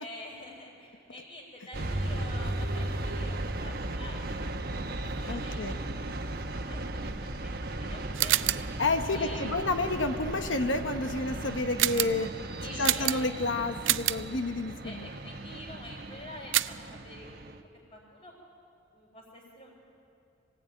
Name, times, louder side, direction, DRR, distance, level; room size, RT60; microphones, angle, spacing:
voice 1, 0.0-4.7 5.0-5.7 6.1-8.6 9.1-9.7 12.1-13.2 14.8-18.3 18.9-19.8, left 1 dB, 35° left, -5 dB, 3.8 m, -47 dB
sound 1, 1.7-17.6, right 1 dB, 50° right, 1.1 m, -36 dB
voice 2, 5.3-5.8 8.8-12.3 12.8-15.1, left 2 dB, 75° left, 7 dB, 1.1 m, -30 dB
sound 2, 8.1-8.7 11.8-12.2 12.8-13.4 13.8-14.3 16.5-16.9, right 14 dB, 80° right, 0.5 m, -27 dB
24.0 x 17.0 x 9.2 m, 2.6 s
head